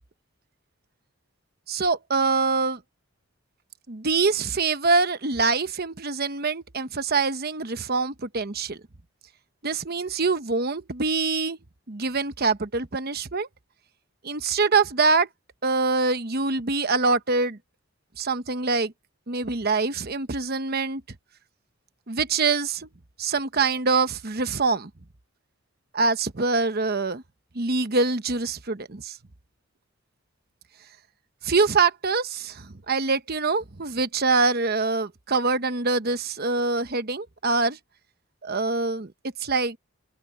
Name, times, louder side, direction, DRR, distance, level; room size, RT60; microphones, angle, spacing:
voice 1, 1.7-2.8 3.9-8.8 9.6-11.6 11.9-13.5 14.2-15.3 15.6-17.6 18.2-18.9 19.3-21.0 22.1-22.9 23.2-24.9 25.9-27.2 27.5-29.2 31.4-37.8 38.4-39.1 39.4-39.8, right 4 dB, 45° right, 1.0 m, -24 dB
open air
head